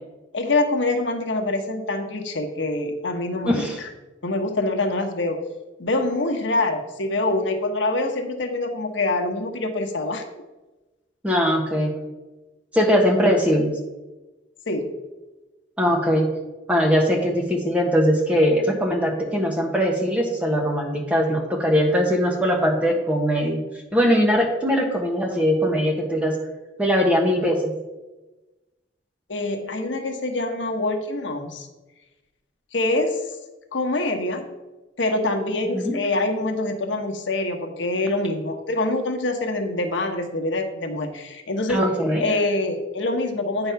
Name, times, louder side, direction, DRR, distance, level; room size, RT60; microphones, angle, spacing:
voice 1, 0.3-3.9 4.2-5.4 5.8-10.2 14.7-14.9 29.3-31.7 32.7-33.2 33.7-34.5 35.0-41.8 42.2-43.7, left 2 dB, 90° left, 5 dB, 1.0 m, -25 dB
voice 2, 3.4-3.8 11.2-11.9 12.7-13.7 15.8-16.3 16.7-23.6 23.9-26.4 26.8-27.7 35.7-35.9 41.7-42.2, equal, 5° right, 0 dB, 1.1 m, -21 dB
9.0 x 3.9 x 5.7 m, 1.1 s
head